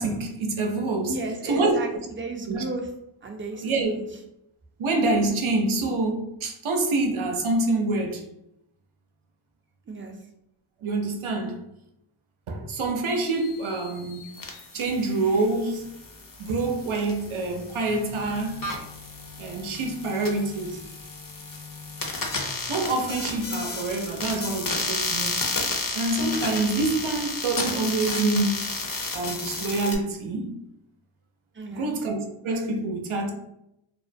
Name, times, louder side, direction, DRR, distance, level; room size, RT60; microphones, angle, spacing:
voice 1, 0.0-1.1 1.5-1.8 2.5-2.6 3.6-3.9 4.8-8.2 10.8-11.6 12.5-14.2 14.7-15.9 16.4-18.6 19.4-20.8 22.7-25.4 25.9-28.6 29.1-30.6 31.7-33.3, right 2 dB, 85° right, 0.5 m, -26 dB
voice 2, 1.1-2.9 3.2-4.1 9.9-10.2 31.5-31.9, right 2 dB, 25° right, 0.4 m, -34 dB
sound 1, 13.1-30.0, left 3 dB, 45° left, 0.5 m, -33 dB
2.4 x 2.0 x 2.5 m
wide cardioid pair, 45°, 48 cm